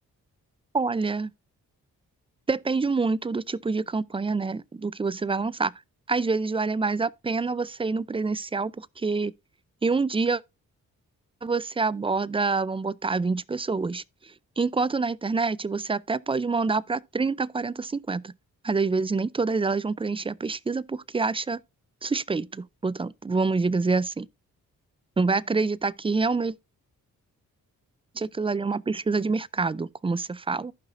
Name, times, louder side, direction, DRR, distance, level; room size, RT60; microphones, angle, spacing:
voice 1, 0.7-1.3 2.5-5.7 6.1-9.3 9.8-10.4 11.4-14.0 14.6-18.3 18.6-21.6 22.0-24.3 25.2-26.5 28.2-30.7, right 4 dB, 15° right, 0.3 m, -26 dB
15.0 x 5.6 x 2.5 m
supercardioid pair, 45°, 37 cm